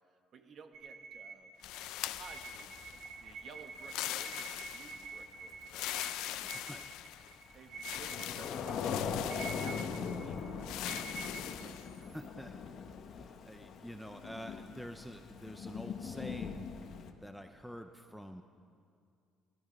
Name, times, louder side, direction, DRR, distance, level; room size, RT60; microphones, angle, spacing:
voice 1, 0.3-1.5 2.1-6.6 7.5-11.8, right 5 dB, 40° right, 6 dB, 1.2 m, -55 dB
sound 1, 0.7-12.3, right 5 dB, 75° right, 2.0 m, -48 dB
sound 2, 1.6-3.1 3.8-5.1 5.7-7.3 7.8-10.2 10.6-11.9, left 14 dB, 80° left, 0.5 m, -42 dB
Thunder / Rain, 1.6-17.1, left 6 dB, 45° left, 1.0 m, -42 dB
voice 2, 6.5-6.9 11.9-12.6 13.1-16.7 17.2-18.4, equal, ahead, 6 dB, 0.5 m, -47 dB
19.0 x 13.0 x 5.2 m, 2.2 s
cardioid pair, 160°, 0 cm